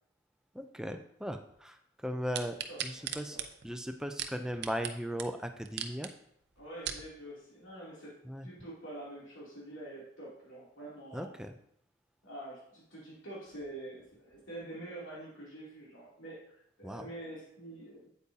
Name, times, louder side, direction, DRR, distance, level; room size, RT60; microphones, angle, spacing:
voice 1, 0.5-3.4 3.6-6.1 8.2-8.5 11.1-11.5 16.8-17.1, equal, 5° right, 6 dB, 0.5 m, -38 dB
sound 1, 2.3-4.9 5.2-5.3 5.7-6.1 6.6-7.1 7.7-7.8, right 9 dB, 55° right, 0.6 m, -38 dB
voice 2, 2.7-3.4 6.6-8.2 8.4-11.4 12.2-18.1, right 1 dB, 75° left, -7 dB, 2.9 m, -46 dB
8.4 x 8.3 x 2.8 m, 0.69 s
head